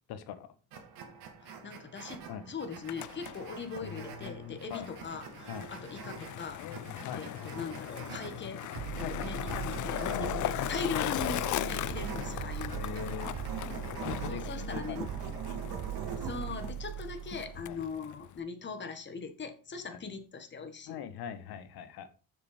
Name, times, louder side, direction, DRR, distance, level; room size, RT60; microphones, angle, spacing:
voice 1, 0.1-0.5 2.3-2.4 3.8-4.9 5.5-5.7 6.6-6.8 7.0-7.3 9.0-9.6 12.1-12.2 12.7-13.3 14.0-15.2 17.7-17.8 19.9-20.0 20.9-22.1, left 8 dB, 75° left, 10 dB, 1.6 m, -42 dB
sound 1, 0.7-16.7, right 6 dB, 65° right, 2.7 m, -45 dB
voice 2, 1.4-6.6 7.1-8.6 8.9-13.0 14.3-15.1 16.1-21.0, left 5 dB, 30° left, 7 dB, 1.8 m, -40 dB
Skateboard, 2.7-18.4, left 14 dB, 50° left, 0.5 m, -38 dB
sound 2, 8.7-17.8, right 11 dB, 35° right, 0.4 m, -40 dB
6.9 x 6.9 x 5.0 m, 0.35 s
cardioid pair, 125°, 38 cm